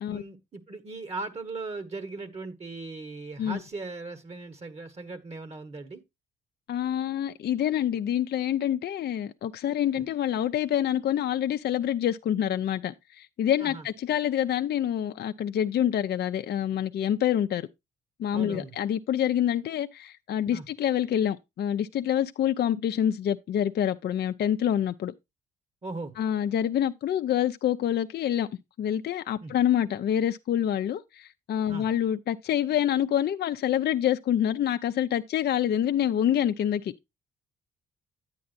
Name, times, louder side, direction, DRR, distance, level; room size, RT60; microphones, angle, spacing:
voice 1, 0.1-6.0 9.9-10.1 13.6-13.9 18.3-18.7 20.5-20.7 25.8-26.1 29.4-29.6 31.7-31.9, right 3 dB, 35° right, 1.3 m, -38 dB
voice 2, 6.7-17.7 18.2-25.1 26.2-28.5 28.8-36.9, left 10 dB, 55° left, 0.5 m, -26 dB
10.5 x 8.5 x 2.5 m
cardioid pair, 90°, 20 cm